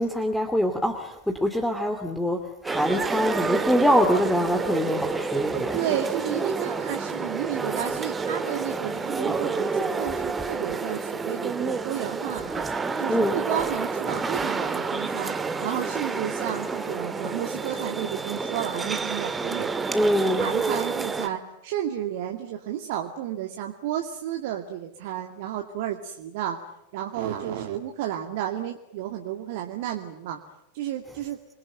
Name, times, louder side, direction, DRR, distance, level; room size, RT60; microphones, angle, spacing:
voice 1, 0.0-2.4 2.6-5.7 13.1-13.4 19.9-20.4, equal, ahead, 4 dB, 2.8 m, -24 dB
sound 1, 2.7-21.3, right 4 dB, 15° right, 1.9 m, -29 dB
voice 2, 5.5-12.6 13.0-15.3 15.6-19.9 20.2-26.7 26.9-30.4 30.7-31.4, right 11 dB, 50° right, 3 dB, 2.3 m, -32 dB
29.0 x 22.0 x 9.1 m, 0.84 s
figure-of-eight pair, 90°, 0 cm